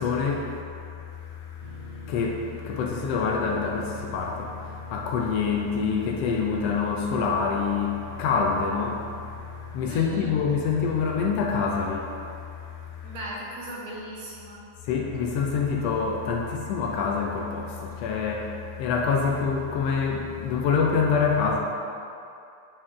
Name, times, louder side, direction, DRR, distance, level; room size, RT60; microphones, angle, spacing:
voice 1, 0.0-13.1 14.8-21.6, left 5 dB, 85° left, -1 dB, 1.4 m, -26 dB
sound 1, 1.6-11.2, right 7 dB, 90° right, 1.1 m, -48 dB
voice 2, 9.9-10.3 13.0-14.6, right 1 dB, 65° right, -6 dB, 2.4 m, -37 dB
9.1 x 4.2 x 3.7 m, 2.6 s
omnidirectional pair, 3.5 m